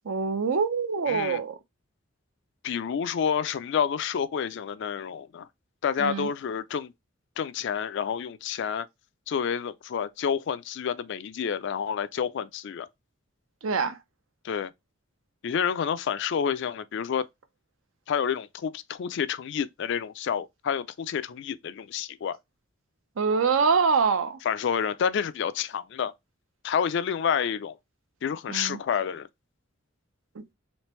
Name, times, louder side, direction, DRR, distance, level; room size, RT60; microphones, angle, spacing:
voice 1, 0.0-1.6 6.0-6.3 13.6-14.0 23.2-24.4 28.5-28.8 30.4-30.5, right 5 dB, 85° right, 0.6 m, -25 dB
voice 2, 1.1-1.4 2.6-5.5 5.8-6.9 7.4-8.9 9.3-12.9 14.4-14.7 15.4-17.3 18.1-22.4 24.4-26.1 26.6-27.8 28.2-29.3, left 7 dB, 60° left, 0.3 m, -29 dB
3.3 x 3.2 x 3.1 m
head